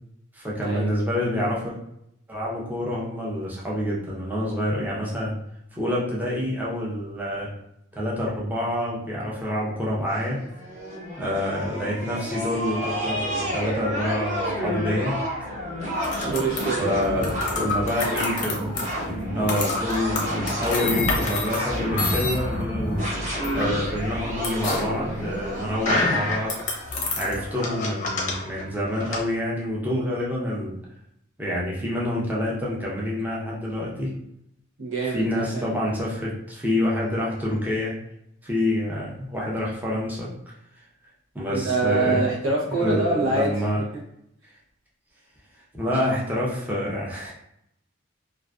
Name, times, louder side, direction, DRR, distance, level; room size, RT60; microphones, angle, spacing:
voice 1, 0.3-1.7 2.3-5.3 5.7-7.5 7.9-10.4 11.2-15.2 16.8-17.3 17.6-18.7 19.3-23.0 23.5-26.5 27.2-30.8 31.4-34.1 35.1-37.9 38.4-40.3 41.3-42.3 42.7-43.8 45.7-47.3, left 1 dB, 10° right, -5 dB, 0.5 m, -27 dB
sound 1, 10.1-27.2, equal, 40° right, 0.9 m, -30 dB
sound 2, 15.9-29.2, left 3 dB, 40° left, 0.5 m, -29 dB
voice 2, 16.2-17.7 34.8-35.7 41.5-44.0, right 3 dB, 85° right, -2 dB, 0.7 m, -26 dB
2.4 x 2.4 x 2.2 m, 0.76 s
head